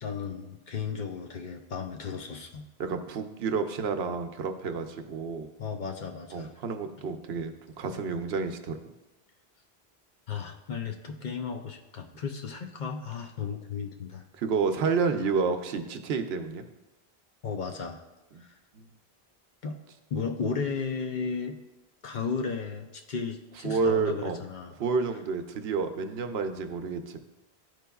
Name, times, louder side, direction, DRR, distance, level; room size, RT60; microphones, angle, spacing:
voice 1, 0.0-2.7 5.6-6.5 10.3-14.2 17.4-18.0 18.4-18.6 19.6-19.8 20.1-21.6 22.0-24.7, left 5 dB, 55° left, 4 dB, 0.6 m, -34 dB
voice 2, 2.8-5.5 6.3-8.8 14.4-16.6 18.7-18.8 23.6-24.4 24.8-27.2, right 5 dB, 80° right, 7 dB, 0.8 m, -30 dB
12.0 x 4.6 x 2.3 m, 1.0 s
omnidirectional pair, 1.1 m